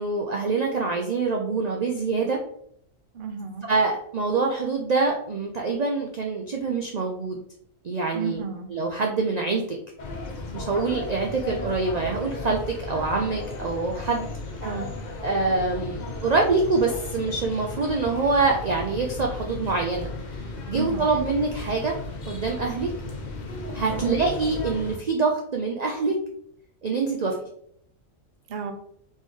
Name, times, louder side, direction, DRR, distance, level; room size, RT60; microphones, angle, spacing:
voice 1, 0.0-2.4 3.6-7.4 7.8-8.4 8.7-9.8 10.5-14.3 15.2-20.1 20.7-21.9 22.3-22.9 23.7-26.2 26.8-27.5, right 3 dB, 80° right, 1 dB, 0.3 m, -25 dB
voice 2, 3.1-3.7 8.1-8.7 14.6-14.9 20.8-21.1 23.8-24.1 28.5-28.7, right 5 dB, 50° right, 5 dB, 0.7 m, -32 dB
sound 1, 10.0-25.0, left 3 dB, 45° left, 0.6 m, -35 dB
4.0 x 3.7 x 3.2 m, 0.68 s
omnidirectional pair, 1.4 m